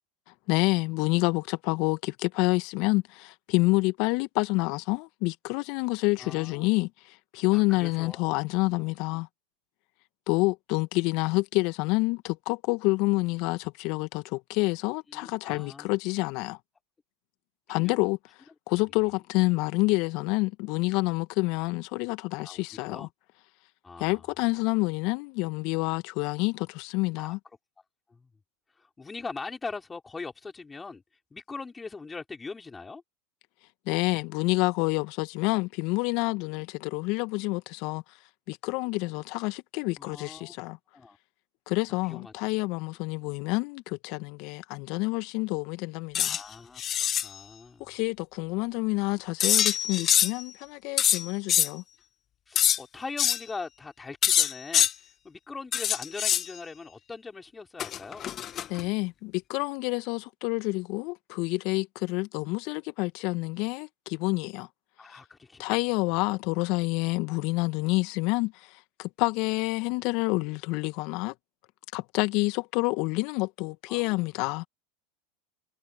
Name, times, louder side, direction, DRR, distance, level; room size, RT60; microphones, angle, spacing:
voice 1, 0.5-9.3 10.3-16.6 17.7-18.2 18.7-23.1 24.0-27.4 33.9-38.0 38.5-40.8 41.7-46.4 47.9-51.8 58.7-64.7 65.1-65.2 65.6-71.3 71.9-74.7, left 24 dB, 55° left, 1.7 m, -28 dB
voice 2, 6.2-6.7 7.5-8.3 15.1-16.0 17.7-18.1 22.4-23.1 23.8-24.2 27.2-27.4 28.1-28.3 28.8-31.0 31.3-33.0 40.0-40.5 40.9-41.2 42.0-42.3 46.2-46.8 47.2-47.9 52.5-54.9 55.2-58.3 65.0-65.8 73.9-74.3, left 4 dB, 15° left, 4.9 m, -41 dB
sound 1, 46.1-46.4 46.8-47.3 49.4-50.4 51.0-51.7 52.6-52.8 53.2-53.4 54.2-54.9 55.7-56.5 57.8-58.8, left 10 dB, 35° left, 1.1 m, -24 dB
hypercardioid pair, 90°, 0 cm